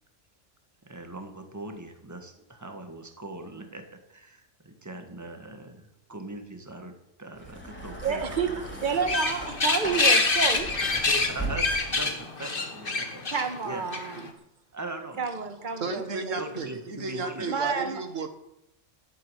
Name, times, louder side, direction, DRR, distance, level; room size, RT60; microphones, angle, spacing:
voice 1, 0.8-8.6 10.8-13.2 13.6-13.8 14.7-15.2 15.9-16.0 16.4-17.6, right 2 dB, 15° right, 5 dB, 1.7 m, -40 dB
sound 1, 7.3-12.1 13.1-13.2, right 1 dB, 10° left, 3.4 m, -38 dB
voice 2, 8.0-8.5 8.8-10.7 13.3-14.3 15.2-16.4 17.5-18.0, right 5 dB, 40° right, 7 dB, 1.5 m, -29 dB
sound 2, 8.9-14.3, left 3 dB, 45° left, 1.7 m, -26 dB
voice 3, 15.8-18.3, right 3 dB, 85° right, 8 dB, 1.9 m, -33 dB
13.0 x 9.4 x 8.2 m, 0.80 s
omnidirectional pair, 1.3 m